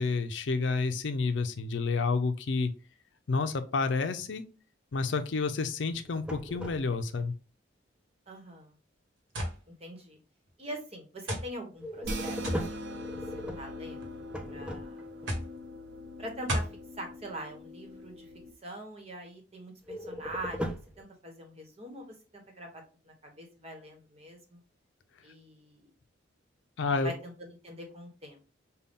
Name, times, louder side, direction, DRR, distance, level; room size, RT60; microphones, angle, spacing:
voice 1, 0.0-2.7 3.3-4.4 4.9-7.3 26.8-27.1, left 4 dB, 75° left, 9 dB, 0.5 m, -29 dB
sound 1, 5.9-7.3 11.8-15.3 19.8-21.0, equal, 5° right, 0.4 m, -39 dB
voice 2, 8.3-8.8 9.8-10.2 10.6-12.4 12.7-13.2 13.6-14.1 14.5-15.0 16.2-16.7 17.0-18.3 18.6-24.6 25.2-25.9 27.0-28.4, right 1 dB, 35° right, 2 dB, 1.1 m, -43 dB
sound 2, 9.3-9.6 10.5-10.6 11.3-11.5 12.4-12.7 13.7-14.1 15.3-15.5 16.5-16.8, equal, 90° right, 1.3 m, -32 dB
sound 3, 12.0-18.5, equal, 65° right, 0.7 m, -41 dB
5.4 x 2.2 x 3.5 m, 0.34 s
head